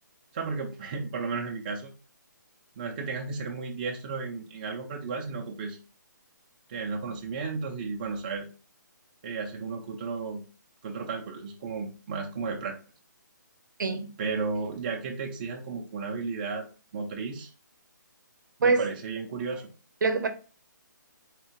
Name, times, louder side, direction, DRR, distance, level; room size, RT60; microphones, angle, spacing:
voice 1, 0.3-1.9 2.8-5.8 6.7-8.5 9.2-10.4 10.8-12.8 14.2-16.6 16.9-17.5 18.6-19.7, right 4 dB, 25° right, 0.4 m, -33 dB
voice 2, 18.6-18.9 20.0-20.3, right 4 dB, 70° right, 0.6 m, -24 dB
3.5 x 2.4 x 2.8 m
hypercardioid pair, 160°, 11 cm